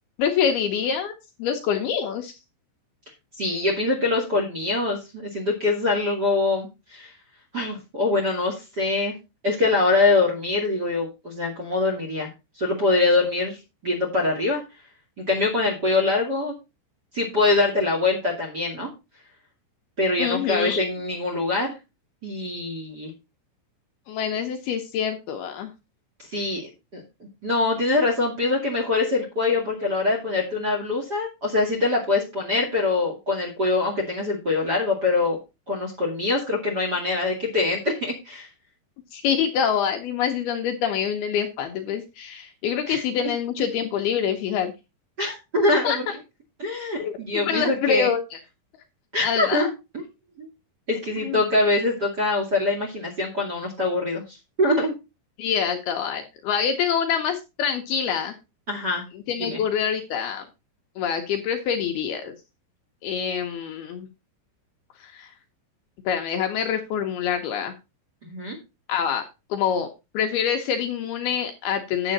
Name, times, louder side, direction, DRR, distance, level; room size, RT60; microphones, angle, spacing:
voice 1, 0.2-1.1 1.4-2.3 20.2-20.9 24.1-25.7 39.1-44.7 45.8-46.0 47.0-48.4 49.2-49.7 51.2-51.4 55.4-58.3 59.1-60.4 61.0-62.3 63.0-64.1 65.0-65.3 66.1-67.7 68.9-69.3 69.5-69.9 70.1-72.1, left 7 dB, 70° left, 4 dB, 2.7 m, -26 dB
voice 2, 3.4-7.1 7.5-9.1 9.4-12.3 12.6-14.6 15.2-16.5 17.1-18.9 20.0-21.8 22.2-23.1 26.2-26.6 26.9-27.0 27.4-35.4 35.7-38.5 42.9-43.0 45.2-46.1 46.6-48.1 49.1-49.7 49.9-50.0 50.4-50.5 50.9-54.9 58.7-59.0 59.4-59.6 68.2-68.6, left 3 dB, 30° right, 2 dB, 2.1 m, -24 dB
10.0 x 7.6 x 4.1 m, 0.26 s
omnidirectional pair, 5.2 m